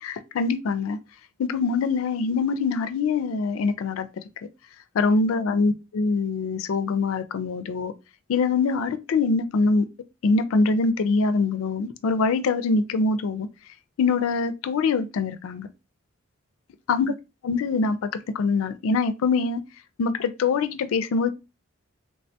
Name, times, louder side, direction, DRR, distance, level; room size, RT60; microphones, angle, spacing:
voice 1, 0.0-1.0 1.4-4.1 4.9-7.9 8.3-9.9 10.2-13.5 14.0-15.7 16.9-17.1 17.4-18.0 18.3-19.6 20.0-21.3, left 4 dB, 85° left, 0.4 m, -23 dB
3.3 x 2.2 x 2.6 m
head